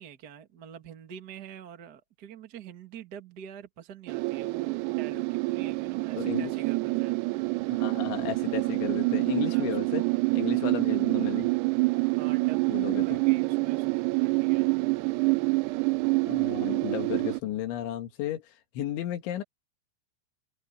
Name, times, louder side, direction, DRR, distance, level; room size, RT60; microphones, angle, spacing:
voice 1, 0.0-7.2 9.4-10.1 12.0-14.7, right 7 dB, 60° right, 1.0 m, -46 dB
sound 1, 4.1-17.4, right 25 dB, 80° right, 2.5 m, -27 dB
voice 2, 6.2-6.5 7.7-10.0 10.3-11.5 12.7-13.2 16.3-19.4, left 12 dB, 85° left, 4.4 m, -34 dB
open air
omnidirectional pair, 5.2 m